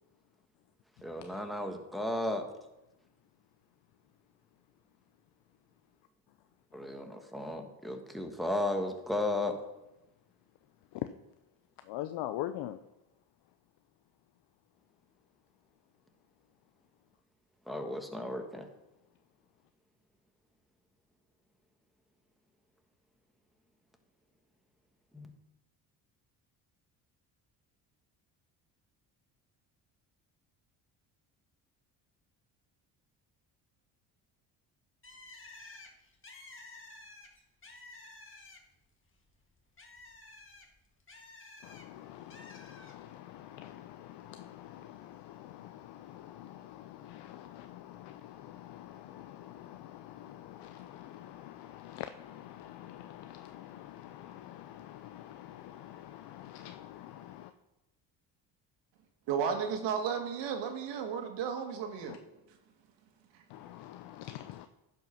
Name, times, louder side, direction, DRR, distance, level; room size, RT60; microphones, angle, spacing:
voice 1, 1.0-2.4 6.7-9.5 17.7-18.6 25.1-25.3, left 1 dB, ahead, 4 dB, 1.5 m, -34 dB
voice 2, 11.9-12.8 41.6-57.5 62.1-62.2 63.5-64.7, left 13 dB, 70° left, 10 dB, 0.6 m, -45 dB
Bird, 35.0-38.9 39.2-41.8 42.3-42.9, left 2 dB, 30° left, 1.9 m, -52 dB
voice 3, 59.3-62.2, right 7 dB, 80° right, 5 dB, 1.5 m, -33 dB
10.5 x 5.3 x 5.7 m, 0.96 s
supercardioid pair, 80°, 43 cm